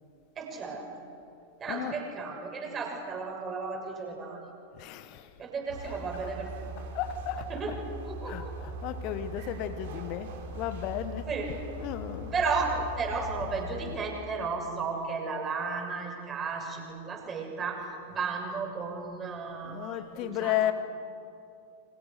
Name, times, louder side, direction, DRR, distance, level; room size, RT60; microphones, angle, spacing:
voice 1, 0.3-0.9 1.6-4.4 5.4-6.7 7.5-7.7 8.0-8.5 11.3-11.5 12.3-20.7, right 4 dB, 25° right, 1 dB, 6.5 m, -34 dB
voice 2, 1.7-2.0 4.8-5.3 5.8-6.0 6.9-7.5 8.2-11.4 11.8-12.4 12.7-12.9 13.4-13.5 19.6-20.7, left 11 dB, 40° left, 11 dB, 1.5 m, -34 dB
sound 1, 5.7-14.1, equal, 55° right, 3.4 m, -40 dB
30.0 x 25.5 x 6.7 m, 2.5 s
figure-of-eight pair, 90°, 0 cm